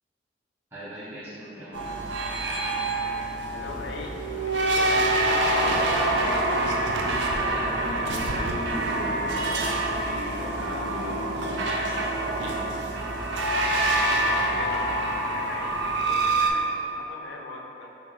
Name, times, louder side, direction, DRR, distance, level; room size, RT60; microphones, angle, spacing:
voice 1, 0.7-2.0 7.3-9.7 10.0-11.9, equal, 15° right, -14 dB, 0.6 m, -38 dB
sound 1, 1.7-16.5, right 2 dB, 85° right, 0.4 m, -26 dB
voice 2, 3.5-6.5 13.8-14.8 15.3-17.9, left 2 dB, 85° left, -1 dB, 0.5 m, -40 dB
sound 2, 3.6-15.1, equal, 45° left, 0.8 m, -41 dB
3.2 x 2.4 x 3.7 m, 3.0 s
head